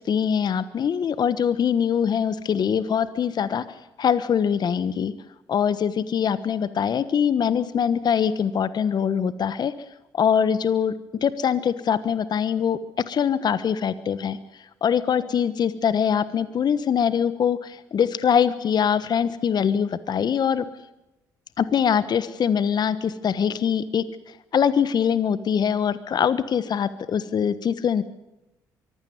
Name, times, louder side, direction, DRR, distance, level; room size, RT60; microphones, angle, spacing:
voice 1, 0.0-3.6 4.0-5.1 5.5-9.7 10.1-10.9 11.2-12.8 13.1-14.4 14.8-20.6 21.6-28.0, left 7 dB, 55° left, 15 dB, 1.3 m, -23 dB
24.0 x 16.0 x 9.4 m, 0.96 s
supercardioid pair, 60°, 9 cm